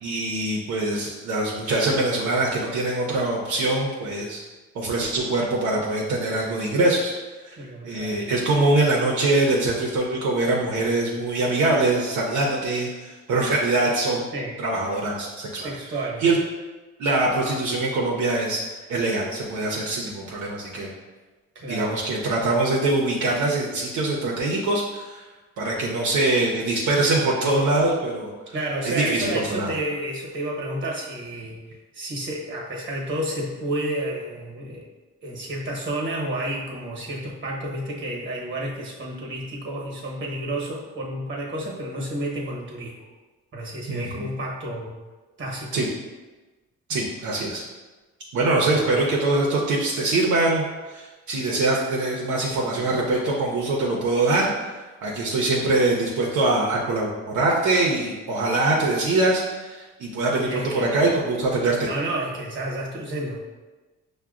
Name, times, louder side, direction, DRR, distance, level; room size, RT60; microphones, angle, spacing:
voice 1, 0.0-4.4 4.7-7.1 7.4-7.6 7.8-14.2 14.6-15.7 16.2-16.4 17.0-18.6 18.9-20.9 21.7-25.2 25.6-28.3 28.8-29.7 43.9-44.2 45.7-45.9 46.9-47.6 48.3-61.9, right 2 dB, 70° right, -3 dB, 0.7 m, -23 dB
voice 2, 7.6-8.3 14.3-14.6 15.5-16.2 21.5-22.0 28.5-31.6 31.9-34.8 35.2-42.9 43.5-44.9 45.4-45.8 48.7-49.0 60.5-61.1 61.8-63.4, right 1 dB, 40° right, -1 dB, 1.0 m, -31 dB
5.6 x 2.2 x 2.4 m, 1.2 s
cardioid pair, 90°, 30 cm